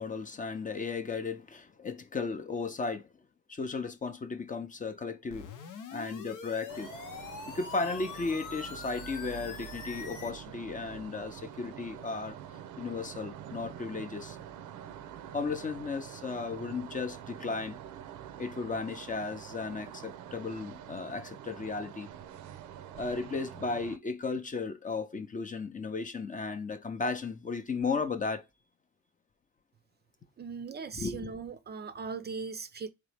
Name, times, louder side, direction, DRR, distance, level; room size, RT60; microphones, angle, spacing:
voice 1, 0.0-3.1 3.5-5.5 5.9-6.9 7.5-12.4 12.8-14.4 15.3-17.8 18.4-22.1 22.9-28.4 30.9-31.3, left 4 dB, 25° left, 0.5 m, -35 dB
sound 1, 5.3-10.3, left 6 dB, 85° left, 0.8 m, -44 dB
sound 2, 6.7-24.0, right 10 dB, 80° right, 0.5 m, -46 dB
voice 2, 30.4-32.9, right 5 dB, 35° right, 0.4 m, -39 dB
3.8 x 3.1 x 3.3 m
cardioid pair, 90°, 30 cm